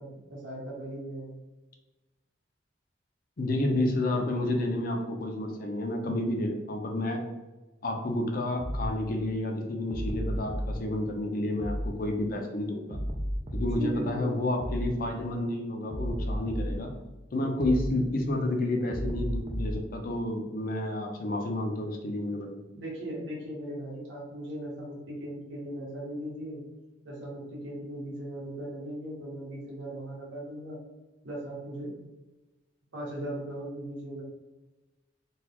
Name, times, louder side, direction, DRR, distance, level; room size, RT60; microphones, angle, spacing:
voice 1, 0.0-1.3 13.7-14.4 22.7-26.6 27.0-30.8 31.2-31.9 32.9-34.2, right 1 dB, 85° right, -5 dB, 1.5 m, -38 dB
voice 2, 3.4-7.2 7.8-13.0 13.5-16.9 17.3-22.6, left 1 dB, 50° left, 2 dB, 0.5 m, -30 dB
sound 1, 8.6-8.9 9.9-10.8 11.6-11.9 12.9-13.8 14.6-14.9 15.9-16.8 17.6-17.9 18.9-19.8, equal, 25° right, 0.5 m, -32 dB
3.9 x 2.4 x 2.9 m, 1.1 s
head